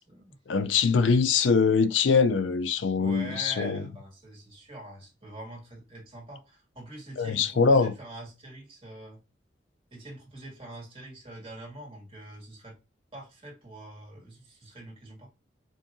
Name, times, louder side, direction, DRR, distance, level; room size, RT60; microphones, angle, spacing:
voice 1, 0.5-3.8 7.2-7.9, left 5 dB, 90° left, 0.5 m, -23 dB
voice 2, 3.0-9.2 9.9-12.8 13.1-15.3, right 1 dB, 30° right, 2.1 m, -44 dB
4.9 x 2.8 x 2.6 m
head